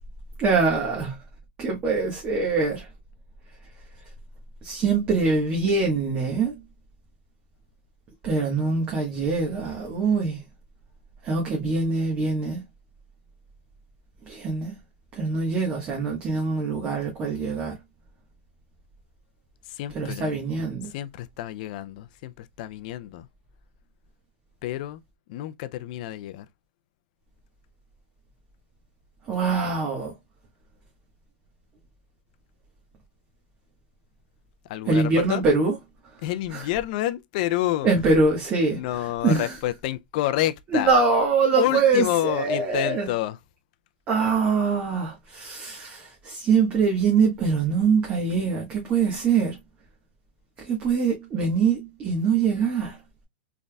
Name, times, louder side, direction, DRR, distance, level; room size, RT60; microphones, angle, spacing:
voice 1, 0.4-1.1 1.6-2.9 4.6-6.5 8.2-10.4 11.2-12.6 14.3-14.7 15.1-17.8 19.9-20.9 29.3-30.1 34.9-35.8 36.5-36.7 37.8-39.6 40.7-43.1 44.1-49.5 50.6-53.0, right 4 dB, 30° right, 1.3 m, -23 dB
voice 2, 19.8-20.5 20.9-23.3 24.6-25.0 25.3-26.5 34.7-35.4 36.2-38.2 38.7-40.9 41.5-43.4, left 14 dB, 55° left, 0.5 m, -29 dB
4.0 x 3.4 x 2.3 m
supercardioid pair, 135°, 5 cm